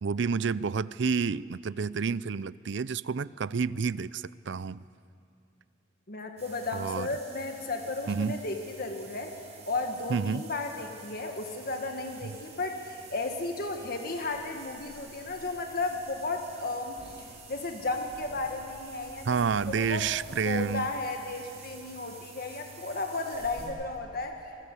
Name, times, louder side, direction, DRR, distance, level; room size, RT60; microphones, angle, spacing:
voice 1, 0.0-4.8 6.7-7.1 8.1-8.4 10.1-10.4 12.2-12.3 19.2-20.9, right 5 dB, 60° right, 19 dB, 0.5 m, -29 dB
voice 2, 6.1-9.3 9.7-20.0 20.4-24.4, left 3 dB, 50° left, 3 dB, 1.6 m, -34 dB
sound 1, 6.4-23.7, right 4 dB, 35° right, 5.9 m, -49 dB
26.5 x 19.0 x 8.3 m, 2.7 s
head